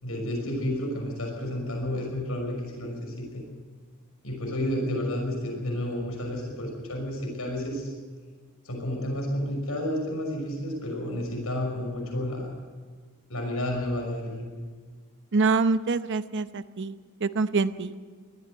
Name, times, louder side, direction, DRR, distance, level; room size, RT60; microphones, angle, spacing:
voice 1, 0.0-3.4 4.2-7.9 8.6-12.5 13.3-14.5, left 1 dB, 80° left, 1 dB, 6.0 m, -31 dB
voice 2, 15.3-16.9 17.2-17.9, right 4 dB, 60° right, 11 dB, 0.8 m, -25 dB
20.0 x 14.0 x 9.3 m, 1.5 s
head